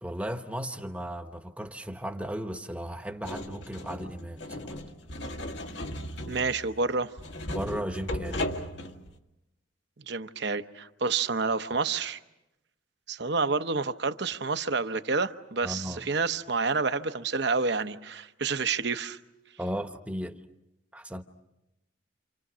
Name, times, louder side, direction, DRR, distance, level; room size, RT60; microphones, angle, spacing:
voice 1, 0.0-4.8 7.5-8.4 15.6-16.0 19.6-20.4 20.9-21.2, equal, 5° right, 1.0 m, -35 dB
sound 1, 3.2-9.2, left 1 dB, 65° left, 1.7 m, -36 dB
voice 2, 6.3-7.1 10.0-12.2 13.1-19.2, right 4 dB, 60° right, 0.9 m, -29 dB
29.5 x 28.0 x 6.2 m
head